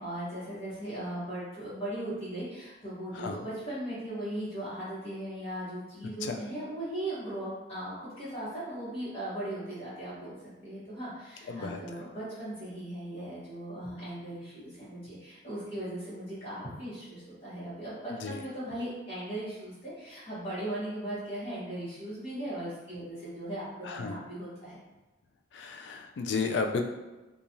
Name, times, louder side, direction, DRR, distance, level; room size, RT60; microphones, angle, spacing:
voice 1, 0.0-10.3 10.6-23.7 23.9-24.8, right 1 dB, 30° left, -12 dB, 1.1 m, -38 dB
voice 2, 3.1-3.4 6.2-6.4 11.5-11.8 18.1-18.4 23.8-24.2 25.5-26.8, left 4 dB, 60° left, 4 dB, 0.3 m, -33 dB
2.9 x 2.3 x 2.6 m, 1.1 s
head